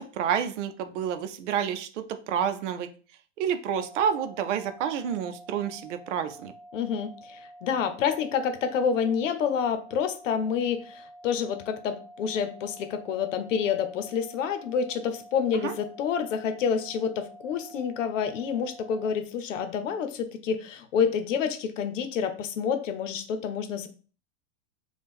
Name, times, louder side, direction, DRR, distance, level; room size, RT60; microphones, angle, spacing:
voice 1, 0.0-2.9 3.4-6.5 15.6-15.7, right 8 dB, 75° right, 10 dB, 0.6 m, -29 dB
sound 1, 3.7-19.1, right 1 dB, 20° left, 0.8 m, -49 dB
voice 2, 6.7-23.9, left 7 dB, 90° left, 9 dB, 0.8 m, -28 dB
3.6 x 2.3 x 4.2 m, 0.40 s
supercardioid pair, 165°, 37 cm